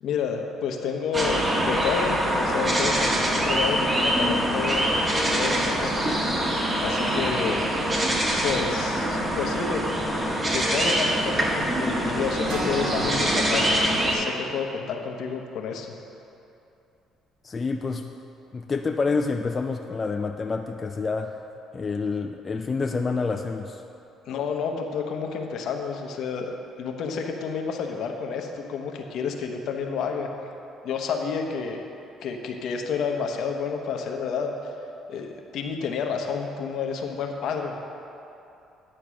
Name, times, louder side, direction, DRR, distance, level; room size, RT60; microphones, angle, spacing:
voice 1, 0.0-6.1 6.8-7.6 8.4-9.8 10.5-15.9 24.3-26.5 26.8-30.3 30.8-31.8 32.2-34.5 35.1-37.7, left 6 dB, 70° left, 3 dB, 0.9 m, -30 dB
sound 1, 1.1-14.1, right 1 dB, 25° right, 1.6 m, -24 dB
sound 2, 12.5-14.6, right 1 dB, 85° right, 1.8 m, -35 dB
voice 2, 17.4-18.1 18.5-21.3 21.7-23.8, left 4 dB, 35° left, 4 dB, 0.4 m, -28 dB
9.9 x 4.5 x 6.2 m, 2.8 s
supercardioid pair, 75°, 0 cm